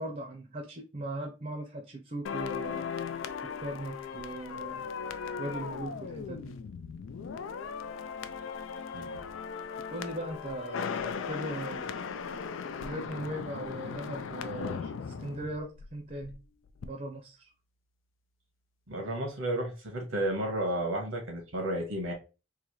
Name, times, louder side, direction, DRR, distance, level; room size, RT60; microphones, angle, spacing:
voice 1, 0.0-2.9 3.6-4.9 5.4-6.5 9.9-11.9 12.8-16.4 16.8-17.5, right 1 dB, 40° right, 0.7 m, -39 dB
sound 1, 2.2-16.4 16.6-16.9, left 6 dB, 75° left, 0.4 m, -38 dB
voice 2, 8.9-9.2 18.9-22.1, right 1 dB, 90° right, 1.6 m, -32 dB
3.8 x 2.7 x 3.0 m
head